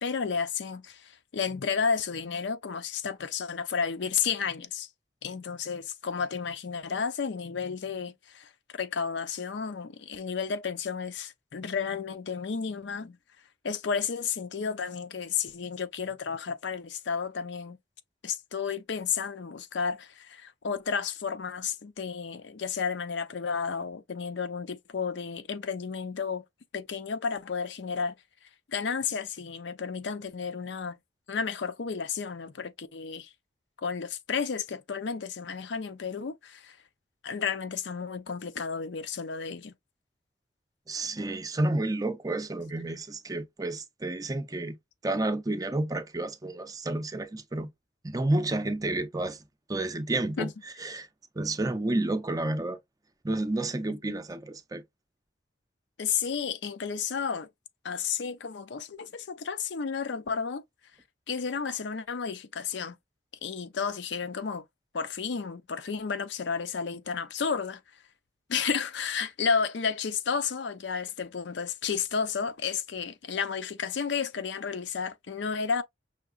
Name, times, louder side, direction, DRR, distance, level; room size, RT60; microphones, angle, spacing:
voice 1, 0.0-4.9 5.2-13.2 13.6-17.8 18.2-26.4 26.7-28.1 28.7-31.0 31.3-33.3 33.8-36.8 37.2-39.7 50.4-50.5 56.0-57.5 57.8-60.6 61.3-63.0 63.4-64.6 64.9-67.8 68.5-75.8, left 6 dB, 70° left, 0.5 m, -32 dB
voice 2, 40.9-44.8 45.0-47.7 48.0-49.4 49.7-50.5 50.8-51.1 51.4-52.8 53.2-54.8, right 2 dB, 20° right, 0.5 m, -30 dB
5.7 x 2.9 x 2.4 m
head